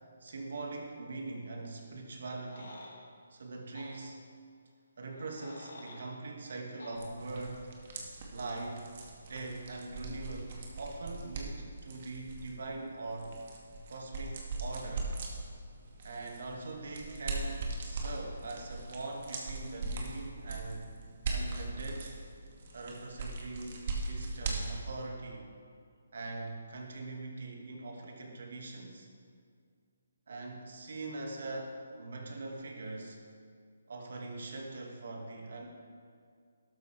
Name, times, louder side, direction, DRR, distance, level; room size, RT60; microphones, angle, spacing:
voice 1, 0.2-2.8 3.3-4.2 5.0-7.7 8.3-8.9 9.3-13.3 13.9-15.1 16.0-20.9 21.3-22.2 22.7-25.5 26.1-29.1 30.3-33.2 33.9-35.7, right 2 dB, 65° right, 1 dB, 2.3 m, -42 dB
sound 1, 2.3-2.9 3.7-3.9 5.1-6.1 6.8-7.0, left 2 dB, 70° left, 3.0 m, -50 dB
sound 2, 7.0-25.1, right 3 dB, 45° right, 2.1 m, -40 dB
13.0 x 12.0 x 3.6 m, 2.2 s
hypercardioid pair, 155°, 0 cm